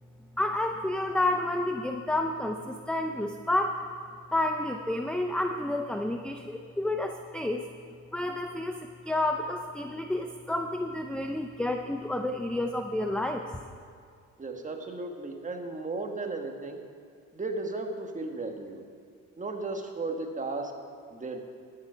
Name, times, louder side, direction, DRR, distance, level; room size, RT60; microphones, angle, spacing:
voice 1, 0.4-3.8 4.3-7.6 8.1-13.4, left 1 dB, 5° left, 4 dB, 0.5 m, -30 dB
voice 2, 14.4-16.8 17.3-18.8 19.4-20.7 21.1-21.4, right 3 dB, 25° right, 3 dB, 1.4 m, -35 dB
11.5 x 9.0 x 5.6 m, 2.2 s
cardioid pair, 90°, 30 cm